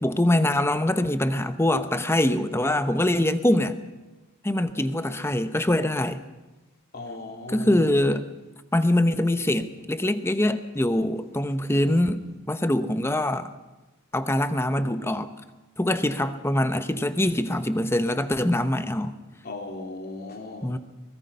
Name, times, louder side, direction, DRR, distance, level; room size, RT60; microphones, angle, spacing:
voice 1, 0.0-3.8 4.4-6.2 7.5-8.2 8.7-12.2 12.5-13.5 14.1-15.3 15.8-19.1 20.6-20.8, left 1 dB, 10° left, 0.9 m, -23 dB
voice 2, 6.9-7.8 19.4-20.7, left 2 dB, 45° left, 2.9 m, -37 dB
23.5 x 20.5 x 5.5 m
head